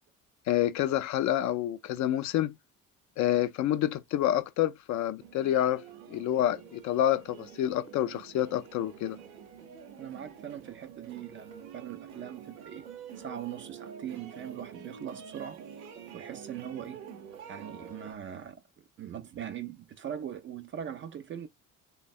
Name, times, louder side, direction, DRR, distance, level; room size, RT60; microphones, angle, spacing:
voice 1, 0.5-2.5 3.2-9.2, left 12 dB, 45° left, 0.4 m, -28 dB
sound 1, 5.2-18.1, right 7 dB, 80° right, 0.7 m, -47 dB
voice 2, 10.0-12.8 13.2-15.6 16.1-17.1 17.5-18.6 19.0-21.5, right 9 dB, 30° right, 0.4 m, -41 dB
3.3 x 2.1 x 2.4 m
hypercardioid pair, 55°, 42 cm